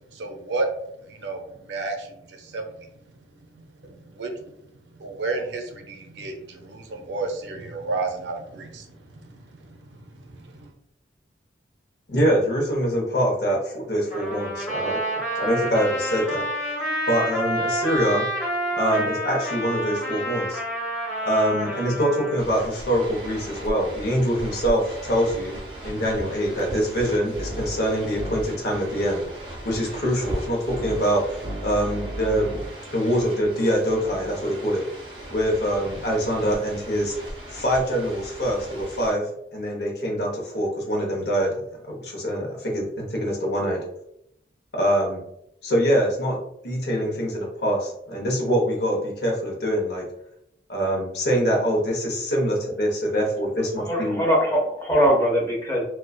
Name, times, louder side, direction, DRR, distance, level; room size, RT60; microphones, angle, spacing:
voice 1, 0.1-0.7 1.0-2.9 3.4-4.4 5.0-10.7, right 3 dB, 80° right, 4 dB, 0.5 m, -32 dB
voice 2, 12.1-15.0 15.4-16.5 17.1-18.3 18.7-20.6 21.2-25.6 25.8-29.2 29.6-31.2 31.6-32.6 32.9-34.8 35.3-37.1 37.5-39.2 39.5-41.5 42.0-43.8 44.7-45.2 45.6-50.0 50.7-54.2, equal, 65° left, -1 dB, 0.7 m, -24 dB
Trumpet, 14.1-22.4, equal, 40° left, 0.9 m, -29 dB
sound 1, 22.4-39.1, right 1 dB, 30° right, 0.6 m, -36 dB
voice 3, 53.8-55.8, equal, 15° left, -3 dB, 0.6 m, -21 dB
2.4 x 2.2 x 2.2 m, 0.77 s
head